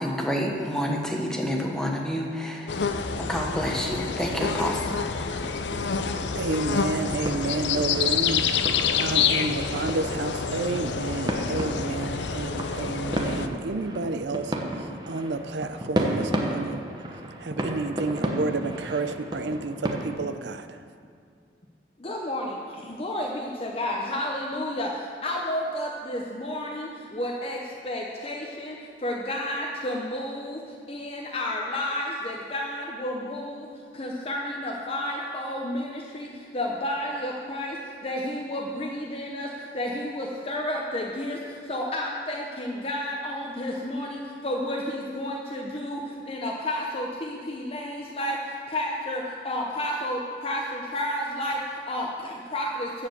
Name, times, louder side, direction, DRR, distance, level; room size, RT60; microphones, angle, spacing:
voice 1, 0.0-2.8 3.2-5.1, equal, 5° left, 0 dB, 1.1 m, -28 dB
sound 1, 2.7-13.5, left 6 dB, 80° left, 0.6 m, -28 dB
sound 2, 5.4-20.1, right 1 dB, 25° right, 1.0 m, -33 dB
voice 2, 6.4-8.4 9.0-14.5 15.1-16.8 17.4-20.7, right 3 dB, 75° right, 10 dB, 0.5 m, -30 dB
voice 3, 22.0-53.1, left 1 dB, 30° left, -1 dB, 0.8 m, -31 dB
13.5 x 5.0 x 7.9 m, 2.2 s
head